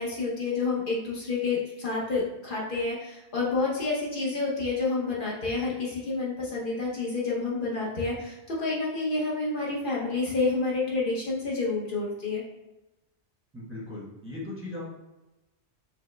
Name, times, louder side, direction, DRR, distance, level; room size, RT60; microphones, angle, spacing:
voice 1, 0.0-12.4, left 3 dB, 55° left, -4 dB, 0.9 m, -29 dB
voice 2, 13.5-14.9, left 2 dB, 15° right, -5 dB, 0.7 m, -38 dB
4.8 x 2.0 x 3.1 m, 0.99 s
omnidirectional pair, 1.1 m